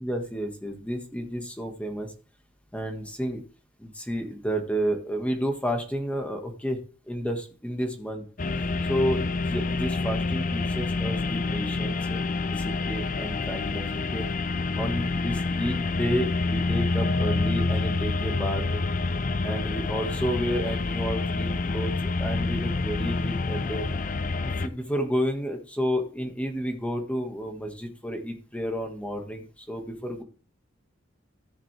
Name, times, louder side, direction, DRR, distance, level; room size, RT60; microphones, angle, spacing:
voice 1, 0.0-2.1 2.7-3.4 3.8-6.8 7.1-8.2 8.9-12.2 12.5-14.3 14.8-18.8 19.4-21.9 22.2-23.9 24.6-30.2, equal, 5° left, 4 dB, 1.7 m, -31 dB
sound 1, 8.4-24.7, left 3 dB, 40° left, 0.5 m, -27 dB
14.5 x 7.4 x 3.4 m, 0.39 s
head